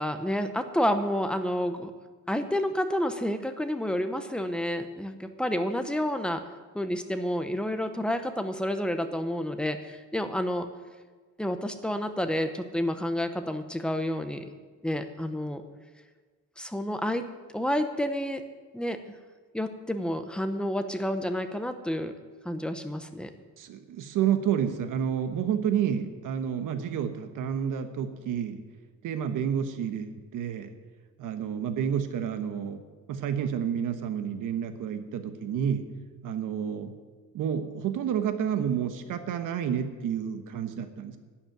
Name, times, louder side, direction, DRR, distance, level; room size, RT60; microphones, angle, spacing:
voice 1, 0.0-1.9 2.3-6.4 6.7-10.7 11.4-14.4 14.8-15.6 16.6-17.3 17.5-18.4 18.7-19.0 19.5-22.1 22.4-23.3, equal, 5° left, 7 dB, 0.7 m, -29 dB
voice 2, 23.6-28.6 29.0-30.7 31.2-32.8 33.1-35.9 36.2-36.9 37.3-41.2, right 8 dB, 90° right, 8 dB, 1.2 m, -30 dB
11.5 x 7.3 x 9.4 m, 1.4 s
cardioid pair, 165°, 31 cm